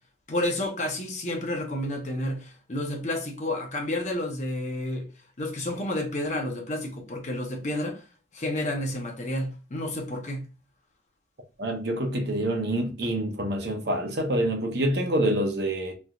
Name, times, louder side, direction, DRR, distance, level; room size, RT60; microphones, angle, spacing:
voice 1, 0.3-5.1 5.4-8.0 8.3-10.4, left 1 dB, 40° left, 0.7 m, -30 dB
voice 2, 11.6-15.9, right 1 dB, 60° right, 0.7 m, -26 dB
3.2 x 2.7 x 2.3 m
head